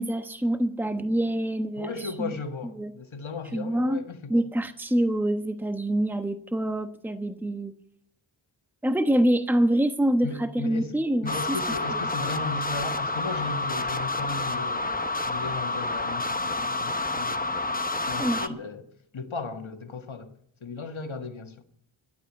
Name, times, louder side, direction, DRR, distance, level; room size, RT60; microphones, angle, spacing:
voice 1, 0.0-1.9 2.2-2.3 2.8-2.9 3.5-4.0 4.3-7.7 8.8-11.6 18.2-18.6, right 1 dB, 5° right, 1.1 m, -25 dB
voice 2, 1.8-4.3 10.2-10.9 11.2-18.9 19.1-20.3 20.6-21.6, left 3 dB, 75° left, 1.7 m, -36 dB
sound 1, 11.3-18.5, left 2 dB, 20° left, 0.9 m, -29 dB
13.0 x 11.5 x 7.4 m
wide cardioid pair, 60°, 47 cm